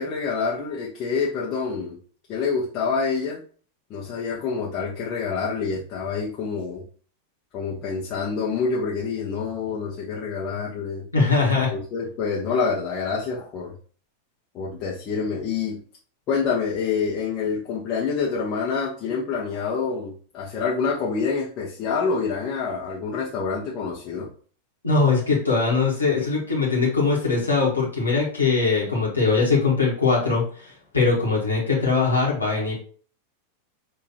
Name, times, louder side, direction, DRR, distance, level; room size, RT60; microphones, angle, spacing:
voice 1, 0.0-2.0 2.3-3.4 3.9-6.8 7.5-11.0 11.7-13.7 14.5-15.8 16.3-24.3, left 5 dB, 35° left, -5 dB, 1.1 m, -27 dB
voice 2, 11.1-11.7 24.8-32.7, left 4 dB, 75° left, -4 dB, 1.6 m, -21 dB
6.0 x 3.0 x 3.0 m, 0.43 s
figure-of-eight pair, 90°, 0 cm